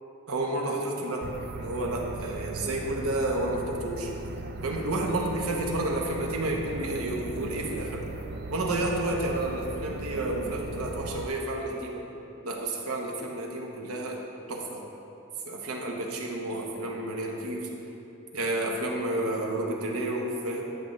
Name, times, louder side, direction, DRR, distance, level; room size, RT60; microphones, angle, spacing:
voice 1, 0.3-1.3 1.6-4.1 4.6-8.0 8.5-12.1 12.4-14.2 14.5-14.8 15.4-17.7 18.3-20.6, right 1 dB, 80° right, 0 dB, 1.0 m, -30 dB
sound 1, 1.2-11.3, right 2 dB, 50° right, 0.4 m, -38 dB
11.0 x 6.3 x 3.1 m, 2.9 s
head